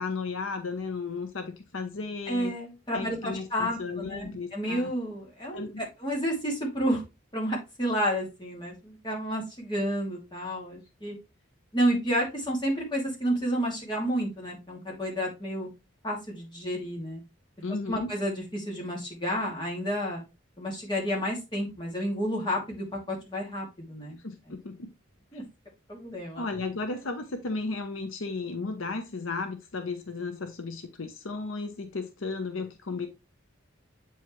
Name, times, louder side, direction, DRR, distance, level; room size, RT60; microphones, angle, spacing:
voice 1, 0.0-2.5 2.9-4.9 5.5-5.9 17.6-18.1 24.2-24.9 26.4-33.1, left 3 dB, 75° left, 0.8 m, -34 dB
voice 2, 2.3-7.0 7.3-11.2 11.7-15.7 16.0-17.2 17.9-20.2 20.6-24.2 25.3-25.4 25.9-26.4, equal, 20° left, 2.5 m, -30 dB
8.3 x 4.7 x 3.1 m
head